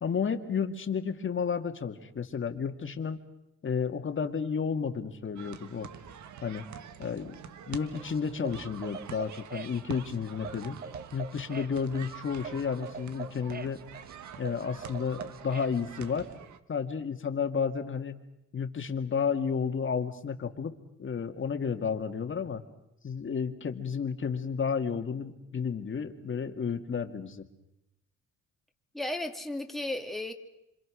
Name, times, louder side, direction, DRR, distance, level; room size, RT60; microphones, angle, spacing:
voice 1, 0.0-3.2 3.6-5.9 6.4-6.6 7.0-7.4 7.7-10.8 11.1-13.8 14.4-16.3 16.7-18.2 18.5-20.7 21.0-22.6 23.0-27.5, left 6 dB, 40° left, 2.3 m, -32 dB
sound 1, 5.4-16.6, right 8 dB, 70° right, 1.6 m, -46 dB
sound 2, 7.9-15.8, right 5 dB, 30° right, 1.1 m, -43 dB
voice 2, 28.9-30.3, left 1 dB, ahead, 2.4 m, -34 dB
27.0 x 26.5 x 6.5 m
cardioid pair, 90°, 30 cm